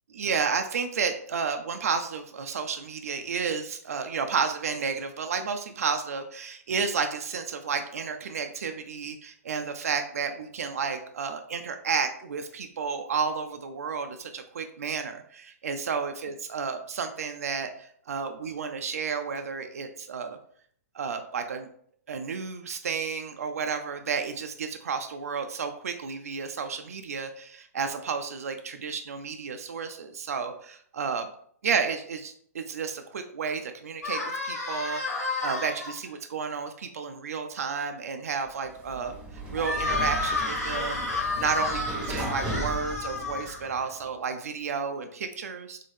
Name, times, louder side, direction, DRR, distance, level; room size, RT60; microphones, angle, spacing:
voice 1, 0.2-20.4 20.9-21.7 22.1-31.3 31.6-39.1 39.5-41.0 41.4-45.8, right 5 dB, 70° right, 7 dB, 0.5 m, -31 dB
sound 1, 34.0-35.9 39.6-43.9, left 3 dB, 90° left, 1.6 m, -31 dB
Sliding door, 38.7-43.9, right 1 dB, 15° right, 1.1 m, -36 dB
3.8 x 3.6 x 3.4 m, 0.62 s
figure-of-eight pair, 115°, 8 cm